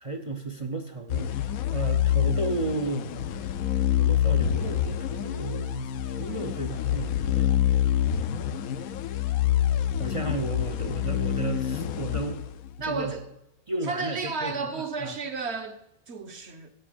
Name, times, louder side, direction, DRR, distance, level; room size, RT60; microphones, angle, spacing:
voice 1, 0.0-3.1 3.9-7.7 10.0-12.4 12.8-13.1 13.7-15.1, right 2 dB, 35° right, 0.5 m, -34 dB
sound 1, 1.1-13.0, left 10 dB, 80° left, 1.0 m, -26 dB
voice 2, 12.8-13.2 13.8-16.7, right 4 dB, 50° right, 1.2 m, -32 dB
10.0 x 8.4 x 5.1 m
omnidirectional pair, 1.5 m